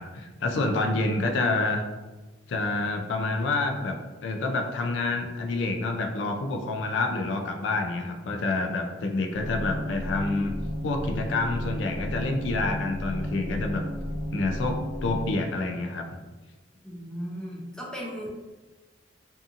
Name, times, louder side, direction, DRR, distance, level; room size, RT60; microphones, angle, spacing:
voice 1, 0.0-1.8 2.5-10.5 10.8-13.8 14.3-16.0, left 3 dB, 80° left, 4 dB, 0.4 m, -28 dB
sound 1, 9.3-15.3, equal, 25° right, 1.1 m, -33 dB
voice 2, 16.8-18.3, equal, 5° left, -4 dB, 0.5 m, -36 dB
2.7 x 2.4 x 2.5 m, 1.2 s
head